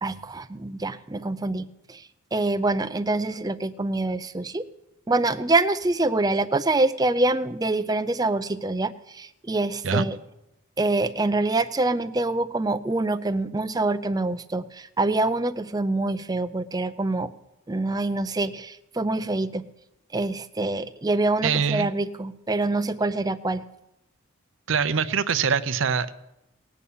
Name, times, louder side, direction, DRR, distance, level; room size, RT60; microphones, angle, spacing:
voice 1, 0.0-4.7 5.1-10.2 10.8-17.3 17.7-19.7 20.1-23.6, right 2 dB, 15° right, 11 dB, 0.5 m, -25 dB
voice 2, 21.4-21.9 24.7-26.1, right 6 dB, 60° right, 13 dB, 0.6 m, -23 dB
19.0 x 7.1 x 8.4 m, 0.90 s
head